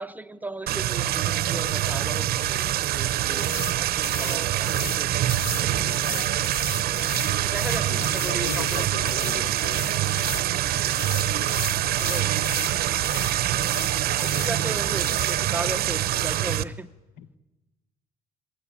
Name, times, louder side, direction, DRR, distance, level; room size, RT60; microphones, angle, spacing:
voice 1, 0.0-6.3 7.4-9.2 12.0-12.4 14.2-16.9, right 2 dB, 10° right, 0.6 m, -37 dB
sound 1, 0.7-16.6, right 12 dB, 65° right, 0.8 m, -25 dB
sound 2, 3.4-3.8 4.0-5.0 5.3-10.5 10.8-12.8 13.0-13.3 13.6-14.5 15.0-15.4, left 9 dB, 60° left, 0.9 m, -37 dB
voice 2, 5.6-6.1 7.9-9.9 11.0-11.4 12.1-12.8 17.2-17.3, left 6 dB, 80° left, 1.3 m, -39 dB
22.5 x 15.0 x 9.9 m
cardioid pair, 110°, 17 cm